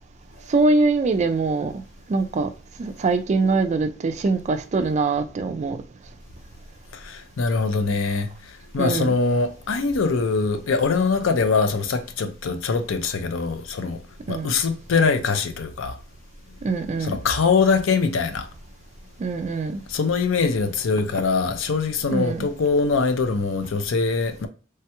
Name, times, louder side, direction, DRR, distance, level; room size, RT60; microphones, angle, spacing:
voice 1, 0.5-1.8 2.1-2.5 2.8-5.8 8.8-9.1 14.3-14.5 16.6-17.2 19.2-19.8 22.1-22.5, right 3 dB, 35° right, 0.3 m, -23 dB
voice 2, 7.4-8.3 8.7-14.0 14.3-15.9 17.0-18.4 19.9-24.5, left 4 dB, 75° left, 0.5 m, -22 dB
3.2 x 2.2 x 2.9 m
head